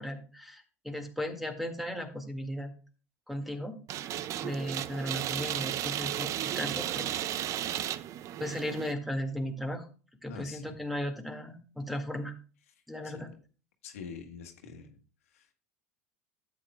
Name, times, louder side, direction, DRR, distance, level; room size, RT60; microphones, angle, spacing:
voice 1, 0.0-2.7 3.3-7.2 8.4-9.9 10.2-12.3 12.9-13.3, equal, ahead, 6 dB, 1.8 m, -36 dB
sound 1, 3.9-8.9, right 12 dB, 45° right, 0.5 m, -34 dB
voice 2, 10.3-10.8 12.7-12.8 13.0-13.4 13.8-15.5, left 6 dB, 75° left, 5 dB, 1.5 m, -46 dB
12.0 x 8.5 x 2.2 m, 0.36 s
hypercardioid pair, 80°, 8 cm